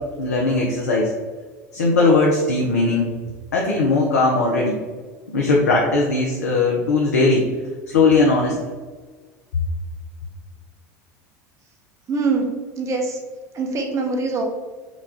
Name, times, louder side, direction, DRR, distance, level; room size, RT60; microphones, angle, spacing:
voice 1, 0.2-1.1 1.7-3.1 3.5-4.8 5.3-7.4 7.9-8.6, left 3 dB, 75° left, -2 dB, 0.6 m, -18 dB
voice 2, 12.1-12.5 12.8-13.2 13.5-14.4, right 3 dB, 35° right, 1 dB, 1.0 m, -23 dB
5.1 x 2.4 x 3.7 m, 1.5 s
figure-of-eight pair, 75°, 9 cm